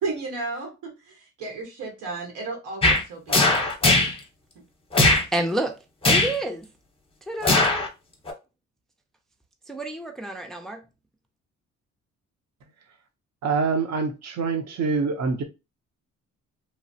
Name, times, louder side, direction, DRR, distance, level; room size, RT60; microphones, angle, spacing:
voice 1, 0.0-3.7, right 3 dB, 85° right, 1.3 m, -33 dB
sound 1, 2.8-3.0 3.3-4.1 4.9-5.2 6.0-6.4 7.4-7.9 8.3-8.4, left 2 dB, 20° left, 0.7 m, -19 dB
voice 2, 5.3-5.8 6.1-6.7 7.3-7.9 9.7-10.8, right 1 dB, ahead, 0.3 m, -29 dB
voice 3, 13.4-15.4, right 4 dB, 60° right, 0.7 m, -25 dB
3.0 x 2.0 x 2.6 m
cardioid pair, 90°, 30 cm